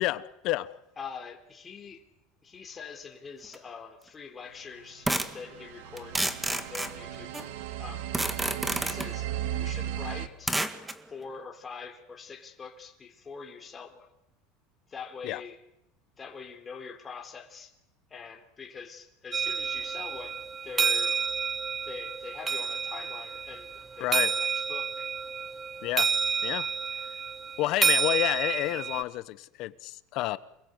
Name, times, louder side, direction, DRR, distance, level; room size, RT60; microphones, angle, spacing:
voice 1, 0.0-0.8 15.2-15.4 24.0-24.3 25.8-26.1 26.4-26.7 27.6-30.4, left 17 dB, 55° left, 1.1 m, -30 dB
voice 2, 1.0-2.0 2.4-7.3 7.8-8.1 8.8-10.6 11.1-14.1 14.9-15.6 16.2-17.7 18.1-21.2 21.8-25.1, left 5 dB, 20° left, 3.8 m, -44 dB
sound 1, 3.5-3.6 5.1-5.4 6.0-7.5 8.1-9.1 10.5-11.0, right 1 dB, 5° right, 1.8 m, -30 dB
sound 2, 4.9-10.3, right 11 dB, 80° right, 2.0 m, -36 dB
sound 3, 19.3-29.0, right 6 dB, 20° right, 0.9 m, -30 dB
28.5 x 21.5 x 8.2 m
supercardioid pair, 125°, 0 cm